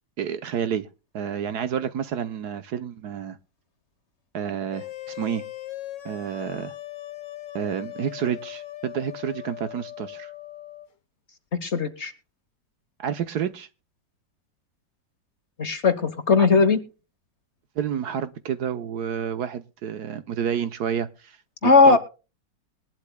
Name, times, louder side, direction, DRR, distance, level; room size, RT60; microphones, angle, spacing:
voice 1, 0.2-0.9 1.1-3.4 4.3-5.4 6.0-6.7 7.5-10.3 13.0-13.7 17.8-21.4 21.6-22.0, right 8 dB, 65° right, 1.3 m, -29 dB
sound 1, 4.7-10.9, left 14 dB, 70° left, 1.8 m, -39 dB
voice 2, 11.6-12.1 15.6-16.8 21.6-22.0, left 4 dB, 40° left, 1.3 m, -18 dB
21.0 x 11.5 x 2.2 m
omnidirectional pair, 2.0 m